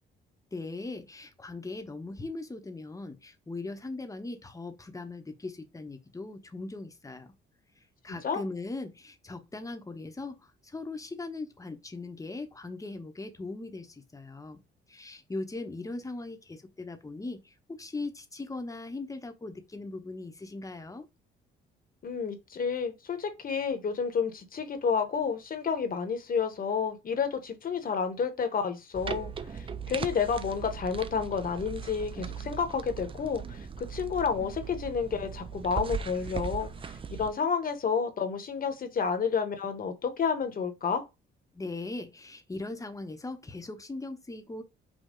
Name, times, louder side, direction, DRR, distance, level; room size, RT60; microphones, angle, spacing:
voice 1, 0.5-7.3 7.8-14.6 14.9-21.1 41.5-44.6, left 2 dB, 15° left, 0.9 m, -39 dB
voice 2, 22.0-36.9 37.2-41.0, left 6 dB, 45° left, 1.1 m, -30 dB
sound 1, 28.9-37.3, right 6 dB, 25° right, 0.4 m, -38 dB
5.4 x 2.2 x 3.8 m
cardioid pair, 90°, 20 cm